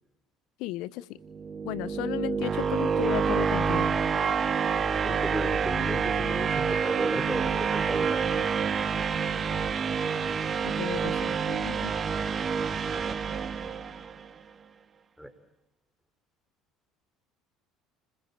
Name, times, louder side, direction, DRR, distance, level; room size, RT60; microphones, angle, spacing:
voice 1, 0.6-1.1 1.6-3.9 10.6-12.0, left 16 dB, 70° left, 17 dB, 0.9 m, -34 dB
sound 1, 1.3-14.3, right 6 dB, 35° right, 1.8 m, -28 dB
voice 2, 5.0-8.3 15.2-15.3, equal, ahead, 8 dB, 4.8 m, -35 dB
29.5 x 21.0 x 8.7 m, 0.88 s
hypercardioid pair, 75°, 0 cm